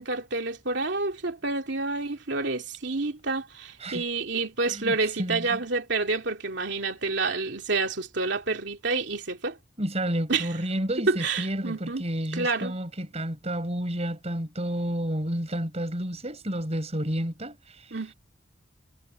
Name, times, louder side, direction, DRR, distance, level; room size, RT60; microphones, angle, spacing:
voice 1, 0.0-9.6 10.3-10.5 11.1-12.0 12.3-12.7 17.9-18.1, right 3 dB, 65° right, 2.9 m, -28 dB
voice 2, 4.7-5.6 9.8-17.9, right 1 dB, 35° right, 5.9 m, -31 dB
head